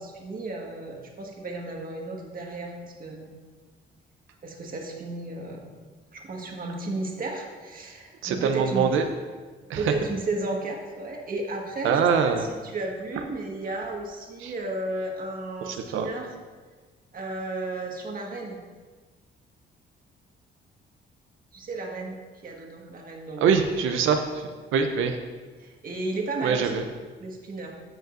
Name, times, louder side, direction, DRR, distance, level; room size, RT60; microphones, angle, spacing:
voice 1, 0.0-3.3 4.4-5.6 6.1-8.9 9.7-16.3 17.1-18.6 21.5-23.5 25.6-26.7 27.2-27.7, right 2 dB, 45° right, 0 dB, 1.6 m, -33 dB
voice 2, 8.2-9.0 9.7-9.8 11.8-12.4 14.4-14.5 15.7-16.1 23.4-24.2 24.7-25.2 26.4-26.8, right 6 dB, 85° right, 6 dB, 0.6 m, -23 dB
15.0 x 5.3 x 2.6 m, 1.4 s
cardioid pair, 90°, 20 cm